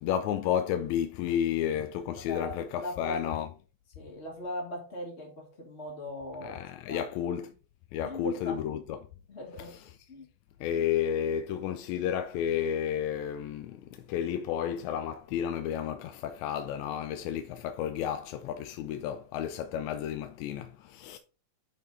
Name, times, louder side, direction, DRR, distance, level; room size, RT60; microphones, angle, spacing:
voice 1, 0.0-3.5 6.4-7.5 7.9-9.0 9.6-10.0 10.6-21.2, left 9 dB, 80° left, 1.8 m, -32 dB
voice 2, 2.1-3.4 3.9-6.6 6.9-7.1 8.0-8.6 9.3-9.8 10.1-10.3, left 1 dB, 30° left, 1.5 m, -39 dB
10.5 x 4.1 x 4.0 m
omnidirectional pair, 3.4 m